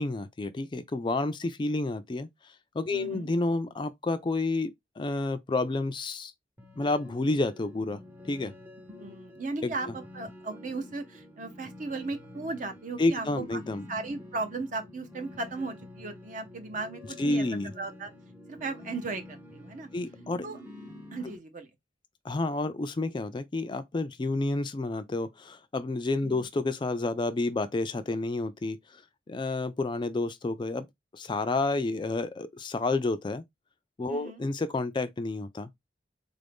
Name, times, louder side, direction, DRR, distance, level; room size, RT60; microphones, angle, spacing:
voice 1, 0.0-2.3 2.7-6.3 6.7-8.0 8.3-8.5 9.6-9.7 13.0-13.8 17.2-17.7 19.9-20.5 22.2-29.0 29.3-30.9 31.1-33.4 34.0-35.9, left 2 dB, 25° left, 0.3 m, -30 dB
voice 2, 2.9-3.3 9.0-13.6 13.9-17.5 17.7-18.1 18.5-19.9 20.4-20.6 21.1-21.7 26.2-26.5 34.1-34.4, right 3 dB, 45° right, 0.7 m, -36 dB
sound 1, 6.6-21.4, left 1 dB, 10° right, 0.7 m, -48 dB
3.8 x 2.6 x 3.4 m
head